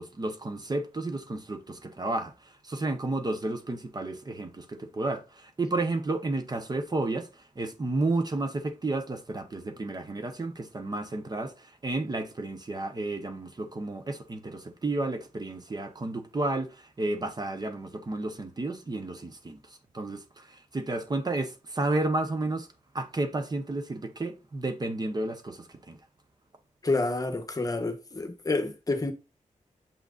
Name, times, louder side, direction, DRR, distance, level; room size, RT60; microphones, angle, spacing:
voice 1, 0.0-22.7 22.9-26.0, right 2 dB, 30° right, 0.9 m, -32 dB
voice 2, 26.8-29.1, left 3 dB, 30° left, 1.1 m, -28 dB
7.0 x 5.9 x 2.5 m
wide cardioid pair, 135°, 13 cm